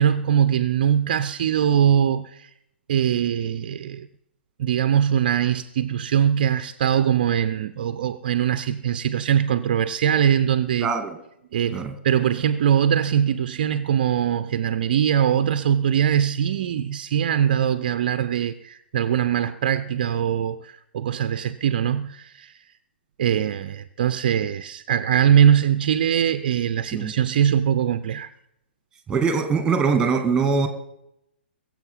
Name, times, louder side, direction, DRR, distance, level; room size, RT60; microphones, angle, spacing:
voice 1, 0.0-2.5 2.9-4.1 4.6-10.9 11.5-22.5 23.2-28.3, right 9 dB, 45° right, 0.6 m, -22 dB
voice 2, 10.8-11.2 11.7-12.0 26.9-27.1 29.1-30.7, right 5 dB, 10° right, 1.8 m, -22 dB
21.5 x 7.6 x 5.4 m
figure-of-eight pair, 120°, 6 cm